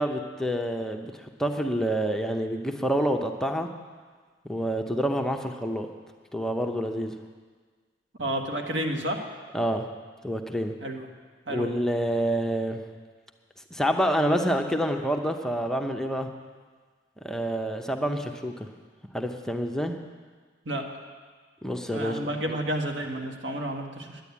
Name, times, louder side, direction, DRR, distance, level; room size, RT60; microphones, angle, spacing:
voice 1, 0.0-3.7 4.4-5.9 6.3-7.1 9.5-9.9 10.2-10.7 11.5-12.8 13.7-16.3 17.2-18.7 19.1-20.0 21.6-22.2, equal, 5° left, 3 dB, 0.7 m, -27 dB
voice 2, 8.2-9.2 10.8-11.1 11.5-11.7 20.6-20.8 21.9-24.2, right 1 dB, 90° right, 2 dB, 1.6 m, -30 dB
10.5 x 10.0 x 8.3 m, 1.5 s
head